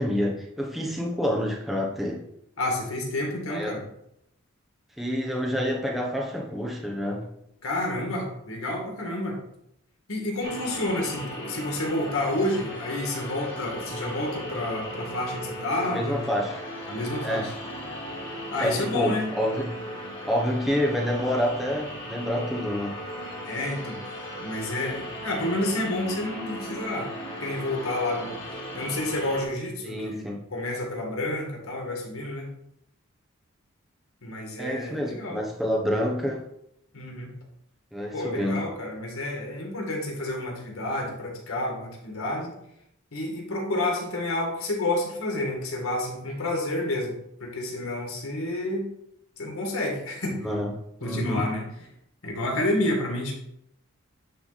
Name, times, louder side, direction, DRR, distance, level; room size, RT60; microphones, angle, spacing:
voice 1, 0.0-2.2 3.5-3.8 5.0-7.3 15.8-16.6 17.2-17.5 18.6-19.8 20.3-23.0 29.8-30.4 34.6-36.4 37.9-38.7 50.4-51.5, equal, ahead, -2 dB, 1.0 m, -28 dB
voice 2, 2.6-3.8 7.6-9.4 10.1-16.2 16.9-17.5 18.5-19.3 23.5-24.0 24.4-27.1 27.4-32.5 34.2-35.4 36.9-37.3 38.1-42.5 43.1-47.1 47.4-48.9 49.4-50.5 51.0-51.7 52.2-53.3, left 1 dB, 90° left, 0 dB, 1.9 m, -29 dB
sound 1, 10.4-29.5, equal, 25° left, 2.1 m, -37 dB
9.8 x 3.4 x 4.1 m, 0.77 s
head